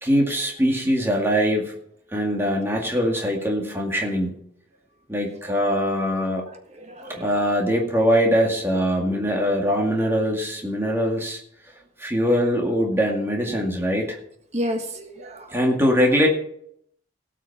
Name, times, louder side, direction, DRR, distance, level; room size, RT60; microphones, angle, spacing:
voice 1, 0.0-1.7 2.1-4.4 5.1-6.4 7.1-11.4 12.0-14.2 15.5-16.3, equal, 10° right, 0 dB, 2.1 m, -22 dB
voice 2, 5.5-5.8 6.7-7.3 14.5-15.8, equal, 35° right, 5 dB, 1.5 m, -32 dB
17.5 x 6.3 x 5.9 m, 0.70 s
head